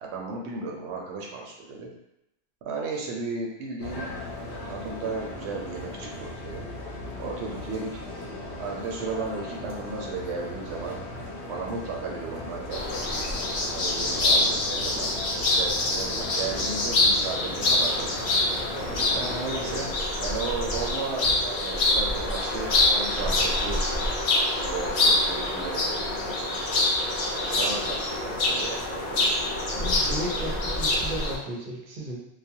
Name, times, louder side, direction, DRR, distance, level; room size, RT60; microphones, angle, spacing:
voice 1, 0.0-1.9 2.6-4.1 4.7-6.7 7.2-8.0 8.6-11.0 11.5-12.8 13.7-18.3 19.1-19.9 20.2-23.8 24.5-26.6 27.4-29.4, right 4 dB, 90° right, -1 dB, 0.9 m, -35 dB
sound 1, 3.8-19.9, left 1 dB, 80° left, 0.9 m, -38 dB
sound 2, 12.7-31.4, left 2 dB, 60° left, 0.6 m, -26 dB
voice 2, 29.8-32.2, equal, 55° right, -3 dB, 0.7 m, -34 dB
2.3 x 2.1 x 2.7 m, 0.84 s
omnidirectional pair, 1.1 m